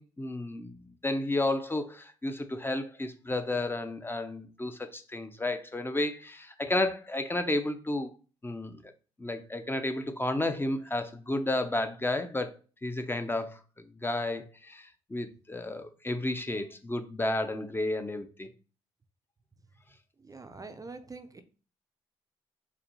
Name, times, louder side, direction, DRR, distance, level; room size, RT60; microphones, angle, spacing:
voice 1, 0.0-8.1 8.4-8.8 9.2-18.5, left 2 dB, 15° left, 0.6 m, -32 dB
voice 2, 20.2-21.4, right 3 dB, 25° right, 0.5 m, -45 dB
4.3 x 2.5 x 2.8 m
supercardioid pair, 55°, 13 cm